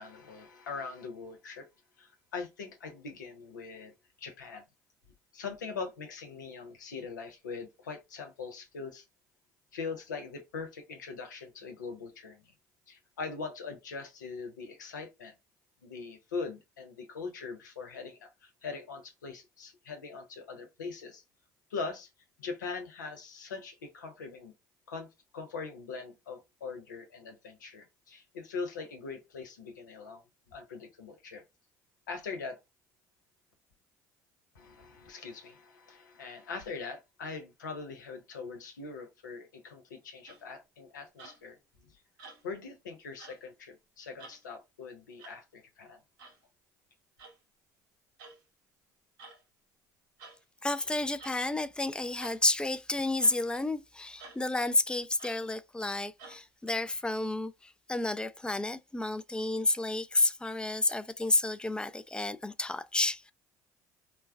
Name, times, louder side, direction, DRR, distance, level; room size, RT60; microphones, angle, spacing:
voice 1, 0.0-1.7 2.0-3.9 4.2-4.6 5.3-9.1 9.7-12.5 12.9-15.3 15.8-21.2 21.7-22.1 22.4-24.5 24.9-25.1 25.3-30.2 30.5-31.4 32.1-32.6 34.5-41.6 41.9-42.0 42.4-46.0, left 4 dB, 85° left, 0.5 m, -42 dB
sound 1, 40.3-40.6 41.2-41.6 42.2-42.6 43.2-43.4 44.2-44.5 45.2-45.4 46.2-46.4 47.2-47.4 48.2-48.4 49.2-49.4 50.2-50.4 51.2-51.4 52.2-52.4 53.2-53.4 54.2-54.4 55.2-55.4 56.2-56.4, right 3 dB, 75° right, 0.8 m, -51 dB
voice 2, 50.6-63.3, left 2 dB, 10° left, 0.3 m, -31 dB
3.2 x 2.1 x 2.2 m
hypercardioid pair, 60°, 10 cm